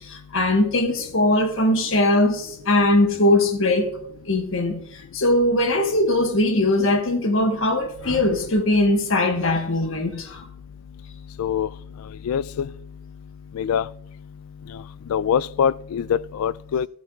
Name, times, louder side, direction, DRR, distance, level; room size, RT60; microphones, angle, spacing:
voice 1, 0.0-3.9 4.3-10.4, left 1 dB, 65° left, 1.2 m, -20 dB
voice 2, 12.3-12.7 13.6-13.8 15.1-16.9, left 8 dB, 90° left, 0.3 m, -23 dB
14.0 x 12.5 x 2.4 m
head